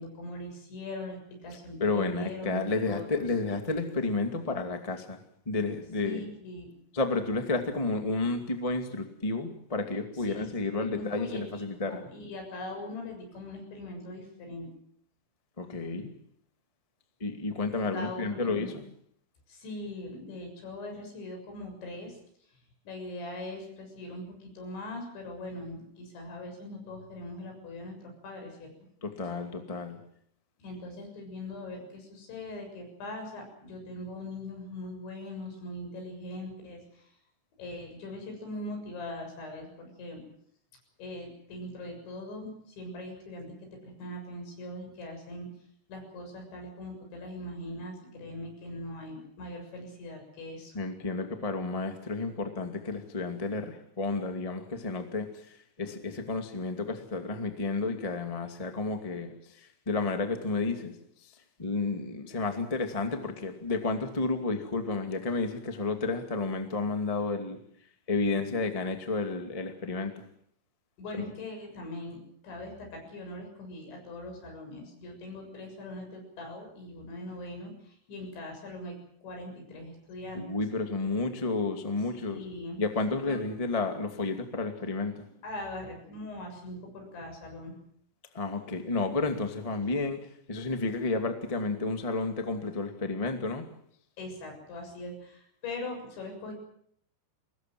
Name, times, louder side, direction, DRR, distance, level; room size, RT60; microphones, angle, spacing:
voice 1, 0.0-3.3 6.0-6.7 10.3-14.7 17.9-18.7 19.5-22.2 22.9-28.7 30.6-37.1 37.6-40.2 41.0-45.5 45.9-50.8 71.0-72.2 72.4-80.6 82.1-82.8 83.3-83.4 85.4-87.7 94.2-96.5, left 1 dB, 70° left, 3 dB, 9.4 m, -41 dB
voice 2, 1.8-5.2 5.4-6.2 6.9-12.0 15.6-16.1 17.2-18.8 29.0-30.0 50.7-60.9 61.2-61.3 61.6-67.6 68.1-70.2 80.3-82.4 82.8-85.3 88.3-90.2 90.5-93.6, left 3 dB, 30° left, 5 dB, 0.6 m, -31 dB
24.0 x 20.0 x 7.9 m, 0.66 s
omnidirectional pair, 5.5 m